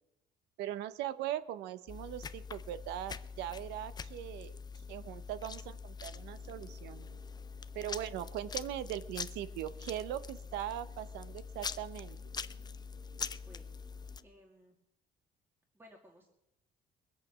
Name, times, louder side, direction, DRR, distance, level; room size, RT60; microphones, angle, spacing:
voice 1, 0.6-4.6 4.9-7.1 7.7-12.2, right 12 dB, 90° right, 15 dB, 0.8 m, -40 dB
sound 1, 1.9-14.2, left 5 dB, 25° left, 0.5 m, -44 dB
sound 2, 6.1-14.3, right 3 dB, 45° right, 3.2 m, -64 dB
voice 2, 13.3-13.8 14.2-14.8 15.7-16.3, equal, 15° right, 0 dB, 2.2 m, -59 dB
21.5 x 8.3 x 6.1 m, 0.86 s
cardioid pair, 110°, 17 cm